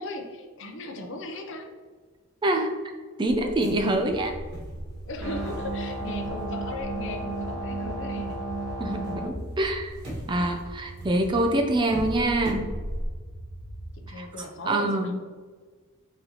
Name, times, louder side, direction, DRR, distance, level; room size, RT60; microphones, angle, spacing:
voice 1, 0.0-1.7 5.1-8.4 14.1-15.1, left 2 dB, 55° left, 4 dB, 0.6 m, -37 dB
voice 2, 2.4-2.7 3.2-4.4 8.8-9.9 10.3-12.7 14.1-15.1, right 1 dB, 20° right, 4 dB, 0.4 m, -25 dB
sound 1, 3.3-8.4 8.7-13.1, equal, 50° right, 1.4 m, -40 dB
sound 2, 4.1-14.1, right 1 dB, 40° left, 1.4 m, -41 dB
sound 3, 5.2-9.3, right 2 dB, 85° right, 1.0 m, -33 dB
4.1 x 3.9 x 2.9 m, 1.4 s
head